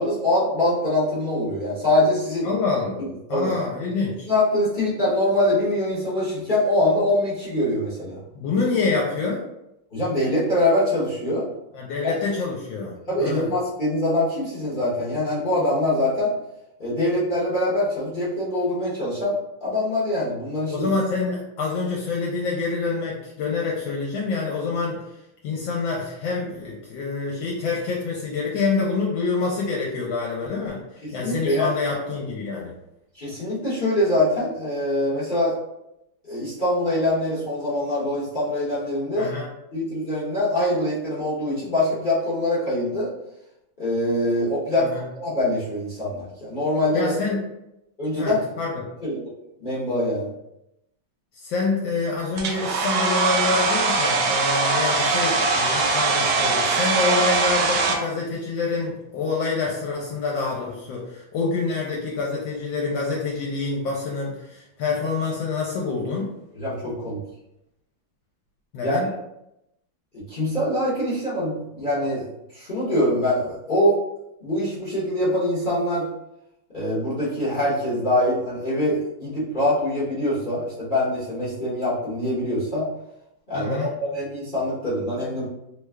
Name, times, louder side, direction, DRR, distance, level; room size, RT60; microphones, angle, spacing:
voice 1, 0.0-2.5 3.3-3.5 4.3-8.2 9.9-11.5 12.0-12.1 13.1-16.3 16.8-20.9 31.0-31.7 33.1-35.5 36.3-39.3 39.7-43.1 43.8-47.1 48.0-48.5 49.0-49.2 49.6-50.3 66.5-67.2 68.8-69.0 70.1-72.2 72.5-74.0 74.4-76.1 76.7-82.9 83.5-85.5, left 1 dB, 45° left, -10 dB, 0.6 m, -24 dB
voice 2, 2.4-3.0 3.3-4.3 8.3-9.4 11.7-13.5 20.7-25.0 25.4-32.7 39.2-39.5 44.8-45.0 46.9-47.4 48.2-48.9 51.3-66.4 68.7-69.1 83.5-83.9, left 4 dB, 75° left, -2 dB, 1.3 m, -26 dB
Domestic sounds home sounds, 52.4-58.0, right 3 dB, 75° right, 0.9 m, -21 dB
3.3 x 2.3 x 3.2 m, 0.86 s
omnidirectional pair, 2.2 m